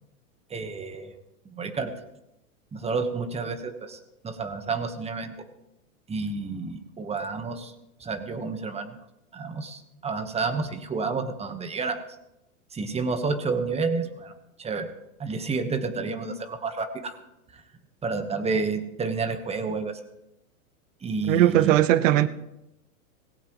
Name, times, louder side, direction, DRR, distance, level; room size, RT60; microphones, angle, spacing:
voice 1, 0.5-1.1 1.4-1.9 2.7-5.3 6.1-7.7 8.0-9.0 9.3-12.0 12.7-14.3 14.6-14.9 15.2-17.2 17.5-17.6 18.0-20.0 21.0-21.8, right 4 dB, 15° right, 1.2 m, -30 dB
voice 2, 21.2-22.3, right 13 dB, 60° right, 1.0 m, -19 dB
17.0 x 16.5 x 3.1 m
hypercardioid pair, 125°, 43 cm